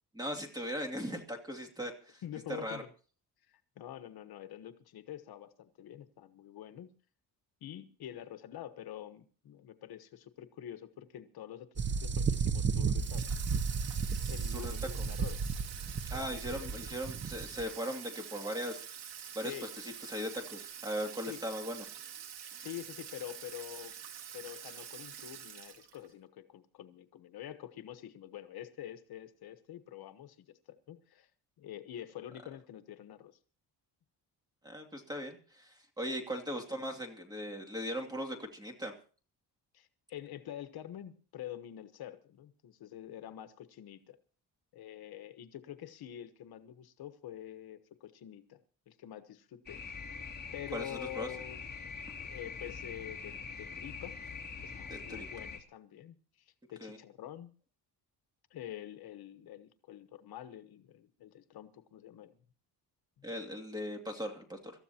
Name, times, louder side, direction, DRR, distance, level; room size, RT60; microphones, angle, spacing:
voice 1, 0.1-2.2 2.5-2.8 14.5-14.9 16.1-18.9 19.3-21.8 34.6-39.0 50.7-51.3 54.9-55.3 56.8-57.0 63.2-64.7, equal, 10° right, 3 dB, 2.6 m, -39 dB
voice 2, 2.2-2.9 3.5-6.9 7.6-13.2 14.3-15.5 16.1-16.7 19.4-19.7 21.3-21.4 22.6-24.0 24.3-31.3 31.6-33.4 39.7-44.2 44.7-48.6 48.9-49.8 50.5-51.6 52.2-54.2 54.6-57.5 58.5-62.4 63.2-63.3, left 11 dB, 65° left, 10 dB, 1.2 m, -47 dB
sound 1, 11.8-17.6, right 5 dB, 30° right, 0.8 m, -33 dB
Water tap faucet / Sink (filling or washing), 13.0-26.1, right 9 dB, 90° right, 2.3 m, -46 dB
sound 2, 49.7-55.6, left 5 dB, 25° left, 2.6 m, -44 dB
26.0 x 14.0 x 2.9 m, 0.39 s
cardioid pair, 160°, 40 cm